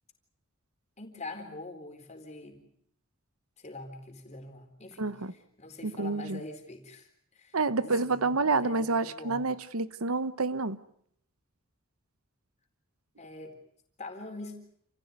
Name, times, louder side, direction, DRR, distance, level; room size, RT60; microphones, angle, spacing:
voice 1, 1.0-2.6 3.6-5.1 5.6-9.5 13.2-13.6 14.0-14.6, left 2 dB, 30° left, 4.1 m, -44 dB
voice 2, 5.0-5.3 5.8-6.4 7.5-10.8, right 3 dB, 85° right, 1.1 m, -28 dB
29.0 x 16.0 x 9.6 m
head